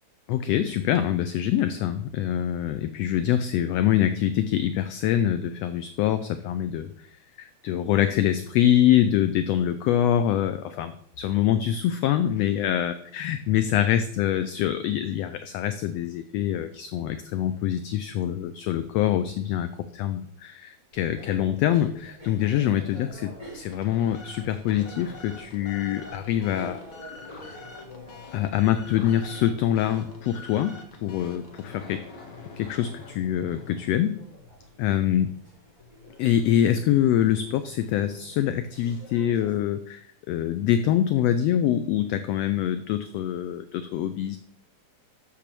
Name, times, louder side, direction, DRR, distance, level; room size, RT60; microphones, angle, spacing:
voice 1, 0.3-7.1 7.4-26.8 28.3-32.0 32.6-34.2 34.8-35.3 36.2-44.4, left 11 dB, 80° left, 11 dB, 1.5 m, -25 dB
sound 1, 20.9-39.6, left 2 dB, 10° left, 4.2 m, -47 dB
sound 2, 23.5-34.1, left 3 dB, 45° left, 1.5 m, -46 dB
7.6 x 7.0 x 6.7 m, 0.66 s
omnidirectional pair, 3.4 m